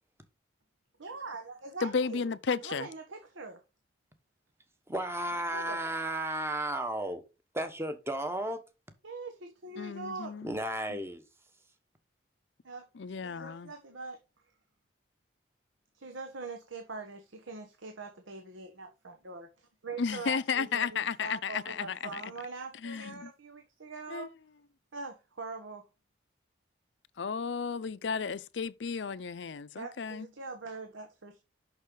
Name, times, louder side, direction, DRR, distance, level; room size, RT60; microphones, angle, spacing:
voice 1, 1.0-2.2 2.6-3.6 5.3-5.8 9.0-10.3 12.6-12.8 13.2-14.2 15.9-24.3 24.9-25.8 29.8-31.4, right 3 dB, 90° right, 1.2 m, -43 dB
voice 2, 1.8-2.9 9.8-10.5 13.0-13.7 20.0-22.2 22.8-23.3 24.1-24.3 27.2-30.3, left 5 dB, 70° left, 0.5 m, -33 dB
voice 3, 4.9-7.2 7.5-8.6 10.4-11.2, right 1 dB, 15° right, 1.0 m, -33 dB
6.4 x 6.1 x 3.9 m
head